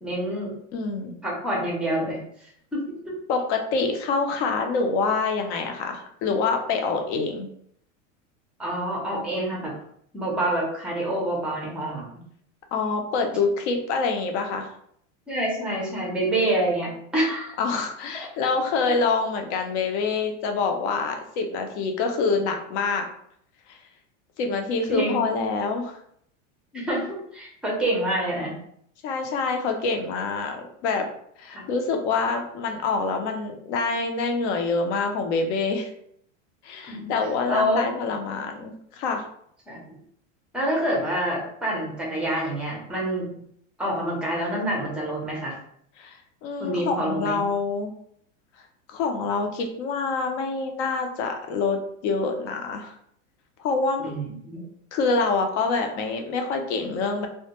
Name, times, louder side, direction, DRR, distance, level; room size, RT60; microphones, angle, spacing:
voice 1, 0.0-0.5 1.2-2.2 2.7-2.8 8.6-9.7 10.1-12.1 15.3-17.6 24.9-25.2 26.7-28.5 31.5-31.6 36.9-37.1 37.5-37.9 39.7-40.0 40.5-43.4 43.8-45.6 46.6-47.4 54.0-54.6, right 1 dB, 5° right, -3 dB, 0.5 m, -27 dB
voice 2, 0.7-1.1 3.3-7.5 12.7-14.7 17.6-23.0 23.7-23.8 24.4-26.0 29.0-31.0 31.4-35.9 36.6-39.3 46.0-47.9 48.9-52.9 53.6-54.1 54.9-57.3, left 4 dB, 60° left, 4 dB, 0.6 m, -26 dB
2.2 x 2.1 x 2.9 m, 0.67 s
supercardioid pair, 135°, 39 cm